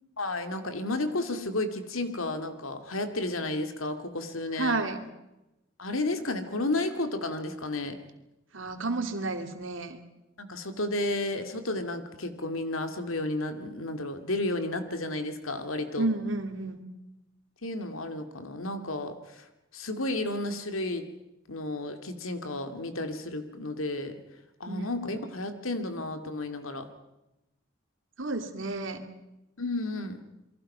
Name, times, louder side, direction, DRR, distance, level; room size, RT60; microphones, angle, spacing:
voice 1, 0.2-4.8 5.8-8.0 10.4-16.1 17.6-19.5 19.7-21.1 21.5-24.2 24.6-26.9 29.6-30.2, left 2 dB, 90° left, 7 dB, 2.4 m, -32 dB
voice 2, 4.6-5.0 8.5-10.0 16.0-16.8 24.7-24.9 28.2-29.0, right 2 dB, 70° right, 6 dB, 2.5 m, -31 dB
28.5 x 22.5 x 5.7 m, 0.95 s
head